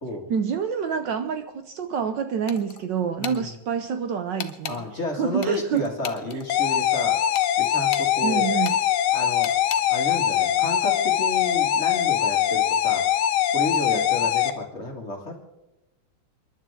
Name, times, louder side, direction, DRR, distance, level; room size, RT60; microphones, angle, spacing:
voice 1, 0.3-4.8 5.2-5.8 6.3-6.4 8.2-8.8, right 7 dB, 65° right, 8 dB, 1.3 m, -27 dB
sound 1, 2.5-2.8 3.2-3.4 4.4-4.8 5.4-6.4 7.3-8.1 8.6-8.8 9.4-9.8, left 8 dB, 55° left, 1.0 m, -35 dB
voice 2, 3.2-3.5 4.7-7.2 7.6-8.5 9.1-9.5 9.9-13.1 13.5-15.4, left 1 dB, 30° left, 1 dB, 2.3 m, -31 dB
sound 2, 6.5-14.5, left 10 dB, 80° left, 1.7 m, -22 dB
29.5 x 11.0 x 3.7 m, 0.97 s
omnidirectional pair, 2.3 m